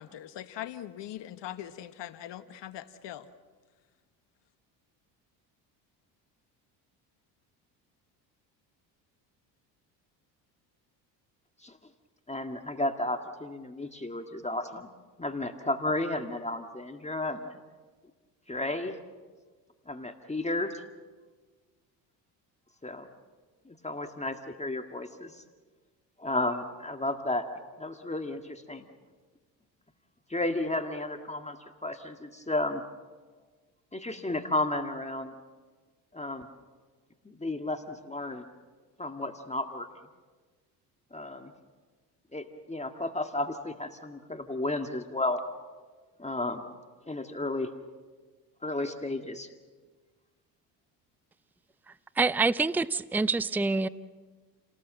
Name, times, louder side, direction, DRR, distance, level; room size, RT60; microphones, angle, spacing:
voice 1, 0.0-3.3, left 12 dB, 55° left, 11 dB, 1.4 m, -41 dB
voice 2, 12.3-14.9 15.2-17.6 18.5-19.0 19.9-20.8 22.8-23.1 23.7-25.4 26.2-27.5 27.8-28.9 30.3-31.6 31.8-32.8 33.9-35.3 36.1-36.5 37.3-38.4 39.0-39.9 41.1-41.5 42.3-45.4 46.2-46.6 47.1-47.7 48.6-49.5, left 2 dB, 15° left, 5 dB, 1.9 m, -33 dB
voice 3, 52.2-53.9, right 3 dB, 5° right, 15 dB, 0.6 m, -26 dB
30.0 x 19.0 x 7.7 m, 1.4 s
hypercardioid pair, 65°, 50 cm